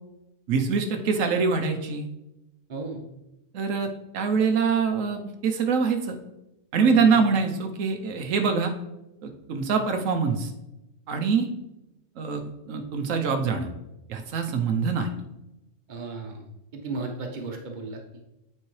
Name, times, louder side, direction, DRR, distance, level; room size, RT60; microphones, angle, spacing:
voice 1, 0.5-2.1 3.5-3.9 4.1-6.2 6.7-8.7 9.2-10.5 11.1-11.5 12.2-12.4 12.7-13.7 14.1-15.1, right 5 dB, 90° right, 5 dB, 1.1 m, -24 dB
voice 2, 2.7-3.0 6.9-7.2 15.9-16.4 16.7-18.0, right 3 dB, 40° right, 2 dB, 1.1 m, -34 dB
8.6 x 4.4 x 3.2 m, 0.91 s
omnidirectional pair, 1.3 m